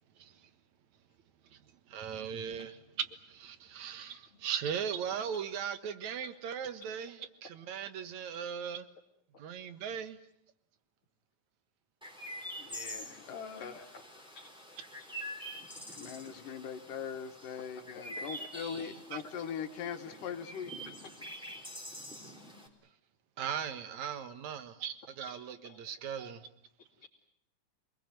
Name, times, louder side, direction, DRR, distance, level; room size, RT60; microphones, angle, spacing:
voice 1, 1.9-2.7 3.4-4.2 4.4-7.1 7.7-8.8 9.4-10.2 23.4-25.4 25.8-26.5, right 8 dB, 65° right, 11 dB, 2.7 m, -38 dB
voice 2, 2.5-2.9 4.3-4.7 5.3-5.4 6.2-6.3 7.2-7.6 7.9-8.0 8.3-8.4 13.3-14.0 14.3-14.5 15.0-15.1 16.4-16.7 17.8-18.9 19.2-19.4 20.1-20.3 21.0-21.1 25.3-26.0 26.8-27.1, left 4 dB, 45° left, -2 dB, 3.3 m, -54 dB
Chirp tweet, 12.0-22.7, equal, ahead, 3.9 m, -46 dB
voice 3, 12.6-13.7 15.9-20.7, left 7 dB, 85° left, 6 dB, 3.3 m, -41 dB
28.0 x 20.5 x 9.3 m, 0.73 s
omnidirectional pair, 3.7 m